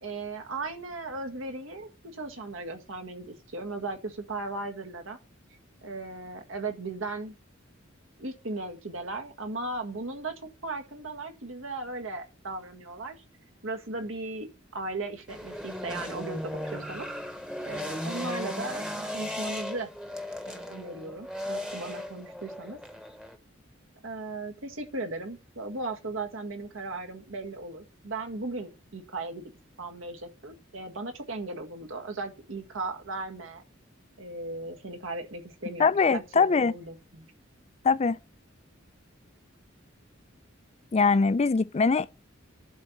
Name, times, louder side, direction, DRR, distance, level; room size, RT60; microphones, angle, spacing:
voice 1, 0.0-5.2 5.8-7.3 8.2-10.3 10.6-13.1 13.6-14.5 14.7-17.0 17.6-19.9 20.5-22.8 24.0-29.4 29.8-33.6 34.2-37.2, right 2 dB, 80° right, 1.7 m, -37 dB
sound 1, 15.3-23.4, left 1 dB, 5° right, 1.0 m, -36 dB
voice 2, 35.8-36.7 37.8-38.2 40.9-42.2, left 4 dB, 30° left, 0.4 m, -22 dB
11.0 x 4.2 x 7.3 m
head